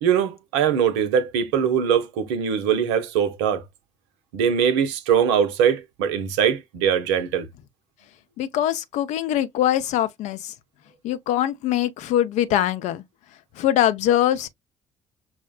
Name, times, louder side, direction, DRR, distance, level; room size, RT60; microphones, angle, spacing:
voice 1, 0.0-3.6 4.3-7.5, right 8 dB, 70° right, 0.6 m, -21 dB
voice 2, 8.4-10.5 11.0-13.0 13.6-14.5, left 12 dB, 55° left, 0.5 m, -22 dB
5.9 x 2.0 x 2.3 m
figure-of-eight pair, 45°, 15 cm